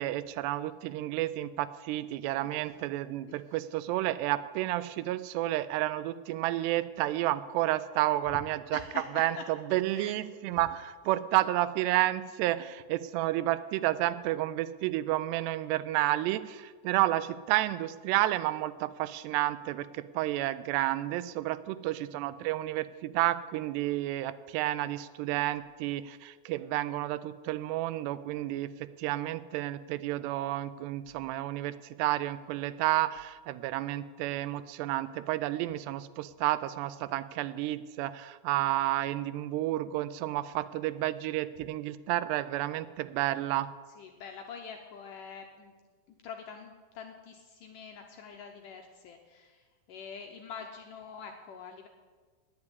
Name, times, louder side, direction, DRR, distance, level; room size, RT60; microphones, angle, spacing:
voice 1, 0.0-28.7 29.0-43.7, right 15 dB, 90° right, 14 dB, 2.7 m, -31 dB
voice 2, 8.7-9.5 9.9-10.1 44.0-45.7 46.2-49.6 49.9-51.9, left 6 dB, 75° left, 3 dB, 2.0 m, -45 dB
9.8 x 9.6 x 9.7 m, 1.4 s
omnidirectional pair, 4.7 m